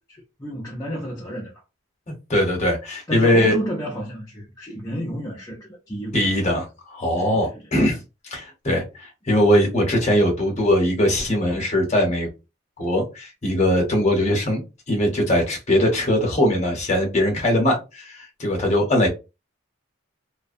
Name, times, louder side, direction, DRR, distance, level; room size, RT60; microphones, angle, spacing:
voice 1, 0.1-1.6 3.1-6.2 7.2-7.6, equal, 15° left, 0.4 m, -31 dB
voice 2, 2.3-3.5 6.1-8.0 8.3-12.3 12.8-19.1, left 1 dB, 35° left, 0.8 m, -21 dB
2.5 x 2.1 x 2.4 m
head